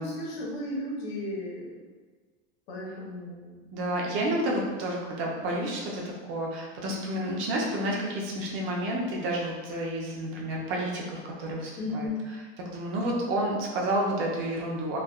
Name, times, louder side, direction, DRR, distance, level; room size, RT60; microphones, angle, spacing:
voice 1, 0.0-1.9 2.7-3.7 11.8-12.2, left 1 dB, 85° left, -5 dB, 1.0 m, -35 dB
voice 2, 3.7-12.1 12.7-15.0, right 1 dB, 40° right, -2 dB, 0.6 m, -30 dB
3.2 x 2.2 x 2.3 m, 1.4 s
supercardioid pair, 160°, 30 cm